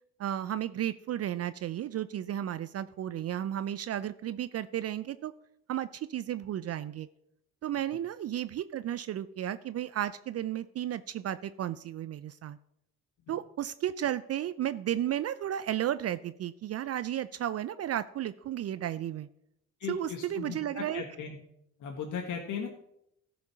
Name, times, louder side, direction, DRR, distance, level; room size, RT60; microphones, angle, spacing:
voice 1, 0.2-5.3 5.7-7.1 7.6-12.6 13.3-19.3 19.9-21.0, right 11 dB, 45° right, 14 dB, 0.5 m, -33 dB
voice 2, 19.8-21.3 21.8-22.7, left 6 dB, 60° left, 2 dB, 1.6 m, -37 dB
14.0 x 5.2 x 5.8 m, 0.76 s
hypercardioid pair, 55°, 35 cm